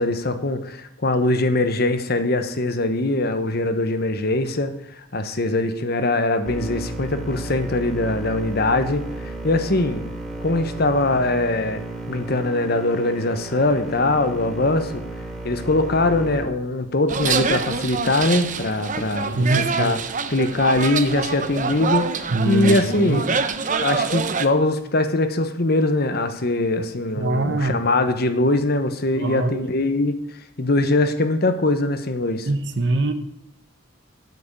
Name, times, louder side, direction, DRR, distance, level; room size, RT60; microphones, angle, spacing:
voice 1, 0.0-10.1 10.4-11.8 12.1-15.0 15.4-20.0 20.3-23.4 23.8-30.1 30.6-32.5, left 2 dB, 55° left, 9 dB, 1.1 m, -22 dB
sound 1, 6.5-16.4, right 2 dB, ahead, 2.6 m, -33 dB
sound 2, 17.1-24.5, right 5 dB, 40° right, 0.8 m, -26 dB
voice 2, 19.3-19.9 22.3-23.3 27.2-27.8 29.2-29.6 32.4-33.1, right 2 dB, 60° right, 9 dB, 1.1 m, -23 dB
9.2 x 7.8 x 8.3 m, 0.79 s
head